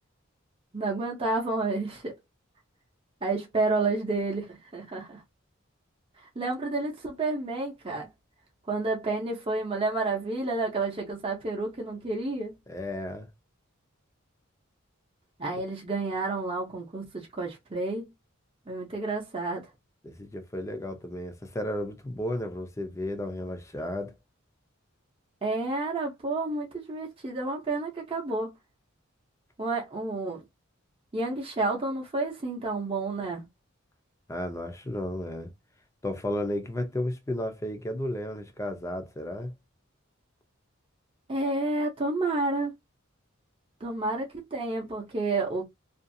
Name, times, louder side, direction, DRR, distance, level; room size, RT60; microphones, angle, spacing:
voice 1, 0.7-2.1 3.2-5.2 6.4-8.1 8.7-12.5 15.4-18.1 18.7-19.7 25.4-28.5 29.6-30.4 31.1-33.4 41.3-42.7 43.8-45.6, right 3 dB, 25° right, 0.7 m, -30 dB
voice 2, 12.7-13.3 20.0-24.1 34.3-35.5 36.0-39.5, left 1 dB, 15° left, 0.5 m, -33 dB
2.5 x 2.4 x 2.6 m
head